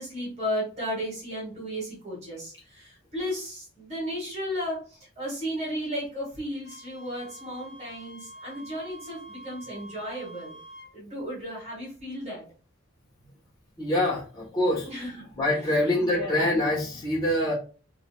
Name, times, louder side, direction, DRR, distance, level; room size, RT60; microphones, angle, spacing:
voice 1, 0.0-10.5 10.9-12.4 14.8-15.2 16.0-16.4, equal, 30° right, -5 dB, 2.0 m, -34 dB
Wind instrument woodwind instrument, 6.6-10.9, right 1 dB, 50° left, 0.6 m, -46 dB
voice 2, 13.8-17.5, left 1 dB, 20° left, -6 dB, 1.2 m, -25 dB
4.8 x 2.8 x 2.3 m, 0.36 s
head